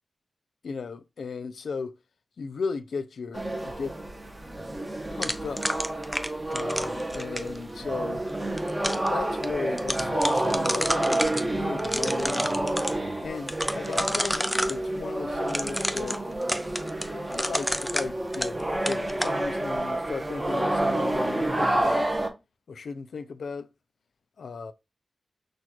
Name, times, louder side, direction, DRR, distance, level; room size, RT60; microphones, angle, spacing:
voice 1, 0.6-2.0 2.4-4.0 5.1-5.7 6.5-8.2 8.9-11.3 11.6-12.7 13.2-16.2 17.1-22.1 22.7-23.7 24.4-24.7, left 5 dB, 90° left, 0.4 m, -36 dB
sound 1, 3.3-22.3, right 1 dB, 20° right, 0.9 m, -29 dB
sound 2, 5.2-7.6 8.3-9.1 9.4-9.5 9.8-11.4 11.8-12.9 13.5-14.8 15.5-18.6 18.9-19.3, equal, ahead, 0.4 m, -30 dB
6.2 x 2.4 x 2.9 m
wide cardioid pair, 105°, 0 cm